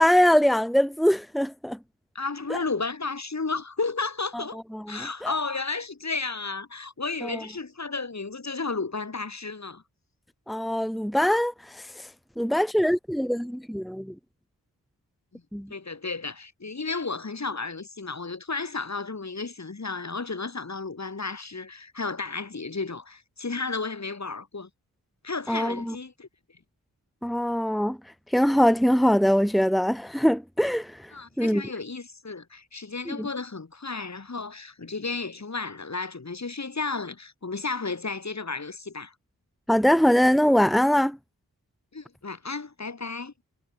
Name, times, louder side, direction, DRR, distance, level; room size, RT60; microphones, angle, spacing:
voice 1, 0.0-1.8 2.5-2.6 4.3-4.4 4.7-5.3 7.2-7.4 10.5-12.1 12.4-14.1 15.5-15.7 25.5-26.0 27.2-28.0 28.3-31.1 31.4-31.6 33.1-33.3 39.7-41.2, equal, ahead, 1.5 m, -23 dB
voice 2, 2.2-4.6 4.9-9.8 15.3-15.4 15.7-24.7 25.2-26.3 31.1-39.1 41.9-43.3, left 4 dB, 50° left, 3.8 m, -33 dB
wide cardioid pair, 85°, 36 cm